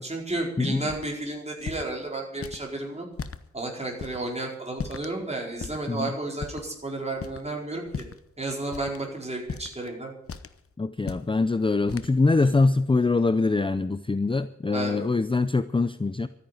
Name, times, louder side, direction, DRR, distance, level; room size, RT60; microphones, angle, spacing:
voice 1, 0.0-3.1 3.5-7.9 8.4-10.2 14.7-15.1, right 2 dB, 20° right, -1 dB, 4.6 m, -32 dB
sound 1, 0.9-1.1 1.6-1.9 2.4-2.6 3.1-3.4 4.0-4.2 4.8-5.1 5.6-5.9 6.4-6.7 7.2-7.5 7.9-8.3 8.7-9.0 9.5-9.9 10.3-10.6 11.0-11.3 11.9-12.1, left 5 dB, 50° left, 0.9 m, -36 dB
voice 2, 10.8-16.3, left 3 dB, 20° left, 13 dB, 0.5 m, -23 dB
13.0 x 9.6 x 9.2 m, 0.75 s
wide cardioid pair, 90°, 29 cm